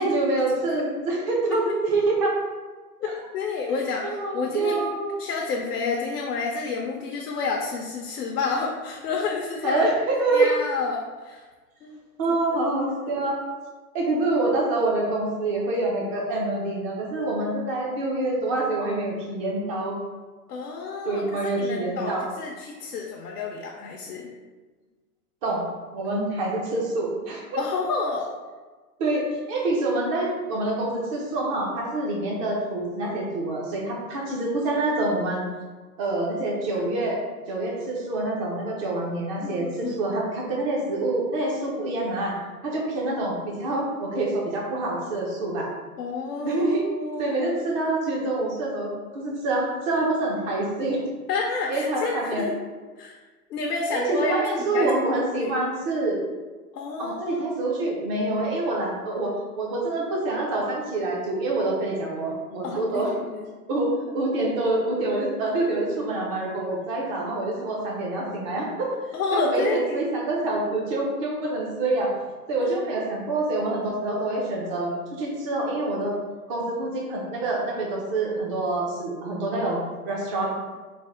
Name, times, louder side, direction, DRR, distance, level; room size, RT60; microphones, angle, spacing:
voice 1, 0.0-2.4 3.0-3.1 4.0-5.1 9.6-10.5 12.2-13.4 13.9-20.0 21.1-22.3 25.4-25.6 25.9-27.6 29.0-35.5 36.0-37.2 37.5-42.4 42.6-45.7 46.4-46.8 47.2-51.0 51.7-52.5 53.9-56.2 57.0-63.1 63.7-68.9 69.3-72.1 72.5-74.9 75.2-76.2 76.5-80.5, right 2 dB, 25° right, -2 dB, 0.4 m, -26 dB
voice 2, 3.0-4.9 5.2-9.8 10.3-11.4 11.8-12.0 13.1-13.2 20.5-24.3 27.6-28.3 39.4-40.0 46.0-47.5 51.3-52.6 53.0-53.2 53.5-54.4 54.7-54.9 55.4-55.5 56.7-57.4 62.6-63.1 63.3-63.5 69.1-70.0 72.6-72.7, left 4 dB, 75° left, -1 dB, 0.7 m, -29 dB
3.3 x 2.0 x 3.7 m, 1.3 s
hypercardioid pair, 125°, 47 cm